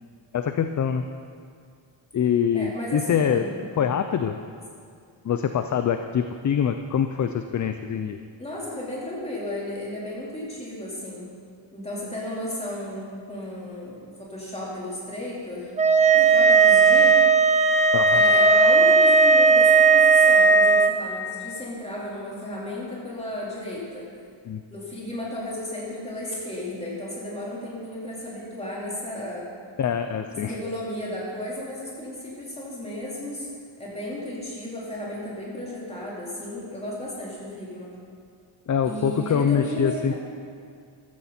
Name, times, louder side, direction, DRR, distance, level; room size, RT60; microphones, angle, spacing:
voice 1, 0.3-1.0 2.1-3.4 3.8-4.4 5.2-8.2 17.9-18.2 24.5-24.6 29.8-30.6 38.7-40.1, left 8 dB, 40° left, 8 dB, 0.5 m, -24 dB
voice 2, 2.5-3.7 8.4-11.3 11.7-15.7 16.1-17.2 18.1-24.1 24.7-29.5 30.4-33.5 33.8-37.9 38.8-40.1, left 1 dB, 15° left, -7 dB, 4.0 m, -34 dB
sound 1, 15.8-20.9, right 4 dB, 15° right, 0.6 m, -16 dB
15.0 x 13.5 x 4.3 m, 2.2 s
wide cardioid pair, 145°, 49 cm